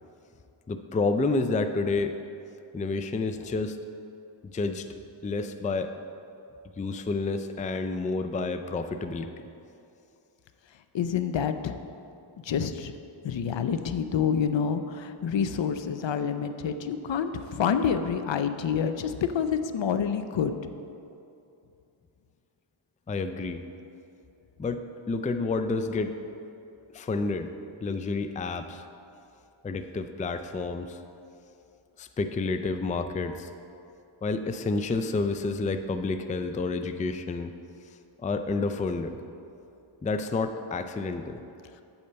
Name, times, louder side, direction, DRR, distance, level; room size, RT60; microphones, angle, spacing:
voice 1, 0.7-2.2 2.7-3.8 4.4-4.9 5.2-5.9 6.8-9.5 23.1-23.6 24.6-26.1 26.9-27.5 27.8-28.9 29.6-31.0 32.0-33.5 34.2-37.5 38.2-39.1 40.0-41.4, left 3 dB, 15° left, 8 dB, 0.4 m, -29 dB
voice 2, 10.9-11.8 12.5-12.9 13.2-20.5, left 7 dB, 65° left, 9 dB, 0.6 m, -27 dB
8.5 x 4.4 x 6.7 m, 2.7 s
cardioid pair, 60°, 49 cm